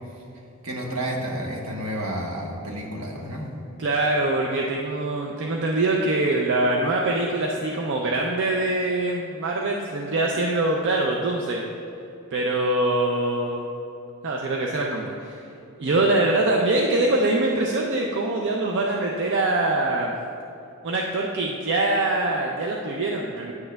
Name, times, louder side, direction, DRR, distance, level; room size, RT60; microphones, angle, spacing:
voice 1, 0.6-3.5, right 1 dB, 70° right, -1 dB, 1.1 m, -30 dB
voice 2, 3.8-11.6 12.3-13.7 14.2-15.4 15.8-20.1 20.8-23.5, right 2 dB, 55° right, 0 dB, 0.5 m, -23 dB
9.7 x 6.4 x 2.3 m, 2.8 s
head